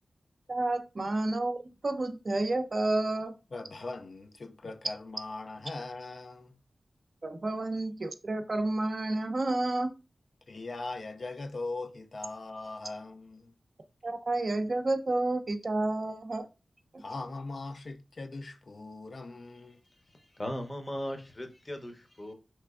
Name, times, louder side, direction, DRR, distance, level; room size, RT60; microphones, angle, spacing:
voice 1, 0.5-1.6 1.8-3.3 7.2-9.9 14.0-16.5, right 2 dB, 55° right, 0.4 m, -30 dB
voice 2, 3.5-6.6 10.5-13.5 17.0-19.8, left 3 dB, 65° left, 0.3 m, -40 dB
voice 3, 20.1-22.3, left 1 dB, 30° left, 0.7 m, -38 dB
3.3 x 3.0 x 2.3 m
cardioid pair, 55°, 0 cm